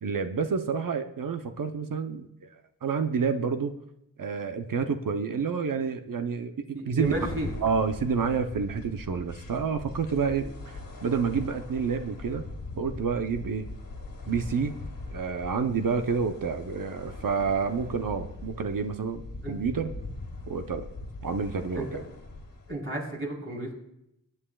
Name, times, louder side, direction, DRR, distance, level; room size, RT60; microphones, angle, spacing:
voice 1, 0.0-2.3 2.8-3.8 4.2-7.1 7.6-10.5 11.0-12.5 12.8-13.7 14.3-14.7 15.1-19.9 20.5-20.8 21.2-22.0, right 5 dB, 70° right, 7 dB, 0.7 m, -29 dB
voice 2, 6.7-7.5 10.4-10.5 19.4-19.5 21.8-21.9 22.7-23.7, right 2 dB, 35° right, -2 dB, 3.5 m, -32 dB
sound 1, 7.0-22.8, left 2 dB, 75° left, 1.9 m, -41 dB
18.5 x 9.0 x 2.3 m, 0.80 s
cardioid pair, 55°, 34 cm